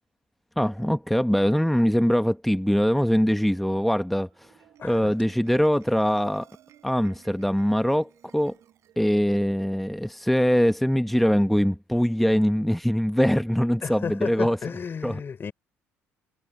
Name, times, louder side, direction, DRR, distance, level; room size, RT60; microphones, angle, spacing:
voice 1, 0.6-4.5 4.8-6.5 6.8-8.5 9.0-14.6 15.0-15.2, equal, ahead, 1.1 m, -22 dB
Marimba xylophone, 4.3-10.9, right 11 dB, 65° right, 4.0 m, -58 dB
voice 2, 4.8-5.1 13.8-15.5, left 6 dB, 40° left, 3.5 m, -33 dB
supercardioid pair, 65°, 6 cm